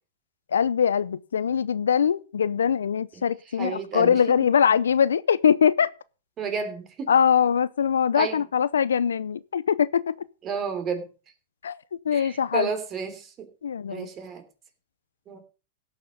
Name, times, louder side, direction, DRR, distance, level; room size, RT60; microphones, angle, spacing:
voice 1, 0.5-5.9 7.1-10.1 11.6-11.8 12.0-12.7 13.6-14.1, left 7 dB, 85° left, 0.6 m, -22 dB
voice 2, 3.6-4.4 6.4-7.1 8.1-8.4 10.4-11.0 12.1-13.5 13.9-14.4 15.3-15.4, right 6 dB, 30° right, 3.1 m, -32 dB
17.0 x 6.5 x 5.2 m
hypercardioid pair, 110°, 0 cm